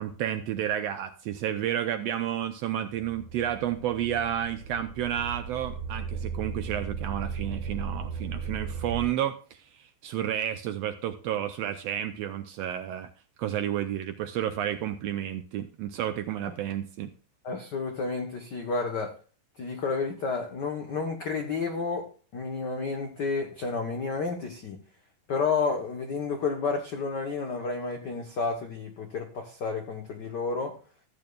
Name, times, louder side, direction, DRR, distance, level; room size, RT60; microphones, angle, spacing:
voice 1, 0.0-13.1 13.4-17.1, right 10 dB, 75° right, 1.5 m, -31 dB
sound 1, 2.9-9.1, right 6 dB, 55° right, 1.8 m, -36 dB
voice 2, 17.4-19.2 19.6-24.8 25.3-30.8, left 4 dB, 75° left, 0.9 m, -31 dB
14.5 x 8.6 x 2.3 m
omnidirectional pair, 3.4 m